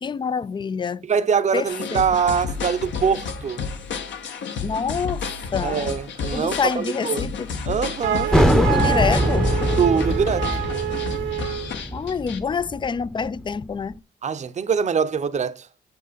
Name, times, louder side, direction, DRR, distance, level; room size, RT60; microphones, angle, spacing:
voice 1, 0.0-1.0 1.5-1.6 1.9-2.0 4.6-5.2 5.5-6.0 6.3-7.5 8.1-8.2 8.5-9.5 11.9-14.0, left 6 dB, 25° left, 0.4 m, -26 dB
voice 2, 1.1-3.6 5.6-7.3 7.7-8.3 9.8-10.5 14.2-15.7, right 6 dB, 35° right, 0.7 m, -23 dB
sound 1, 1.7-12.4, left 5 dB, 70° left, 1.2 m, -31 dB
Wind instrument woodwind instrument, 8.0-11.7, right 13 dB, 80° right, 1.1 m, -27 dB
sound 2, 8.3-13.6, equal, 5° left, 0.7 m, -22 dB
7.3 x 5.8 x 4.0 m
cardioid pair, 90°, 20 cm